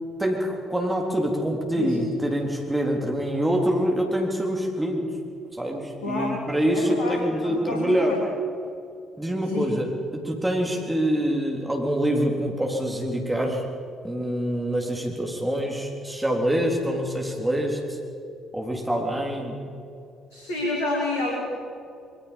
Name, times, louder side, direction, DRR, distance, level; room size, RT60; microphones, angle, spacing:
voice 1, 0.2-5.1 5.5-8.2 9.2-13.6 14.0-18.0 18.5-19.6, equal, 10° right, 1 dB, 3.9 m, -25 dB
voice 2, 6.0-6.5 6.7-8.2 9.4-9.7 20.3-21.4, left 2 dB, 70° left, -3 dB, 3.4 m, -29 dB
25.0 x 23.5 x 5.4 m, 2.6 s
figure-of-eight pair, 45°, 0 cm